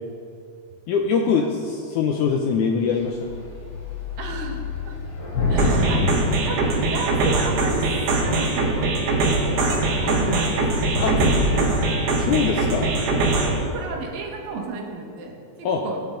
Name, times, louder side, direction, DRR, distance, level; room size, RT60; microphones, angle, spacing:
voice 1, 0.9-3.4 11.0-11.1 12.2-12.9 15.6-15.8, left 6 dB, 80° left, 2 dB, 1.8 m, -23 dB
Thunder / Rain, 2.9-3.0 3.3-7.4 8.1-8.6 9.0-9.2 9.4-13.2, left 2 dB, 55° left, 4.6 m, -27 dB
voice 2, 4.2-5.0 5.5-10.6 11.0-11.9 13.7-16.0, right 3 dB, 70° right, 1 dB, 3.1 m, -33 dB
sound 1, 5.6-13.6, right 3 dB, 90° right, 3.6 m, -22 dB
Wind instrument woodwind instrument, 7.2-10.8 11.1-14.9, right 1 dB, 10° right, 3.1 m, -42 dB
23.0 x 8.9 x 3.9 m, 2.4 s
omnidirectional pair, 4.4 m